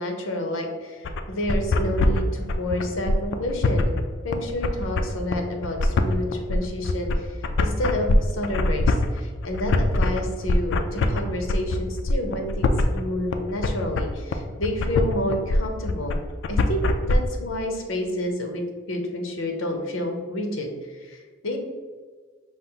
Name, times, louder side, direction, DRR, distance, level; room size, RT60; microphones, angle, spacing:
voice 1, 0.0-3.9 4.2-16.2 16.5-21.6, left 1 dB, 80° left, 3 dB, 0.8 m, -29 dB
sound 1, 1.0-17.2, left 2 dB, 65° left, 0.4 m, -23 dB
5.4 x 2.5 x 3.8 m, 1.5 s
head